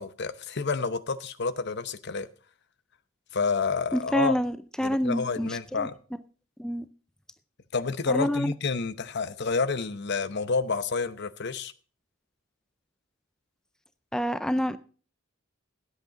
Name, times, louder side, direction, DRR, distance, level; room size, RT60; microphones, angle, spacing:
voice 1, 0.0-2.3 3.3-4.4 4.8-6.0 7.7-11.7, left 4 dB, 55° left, 0.8 m, -29 dB
voice 2, 3.9-5.9 6.6-6.9 8.1-8.5 14.1-14.8, equal, 5° left, 0.4 m, -27 dB
16.5 x 8.1 x 3.9 m
head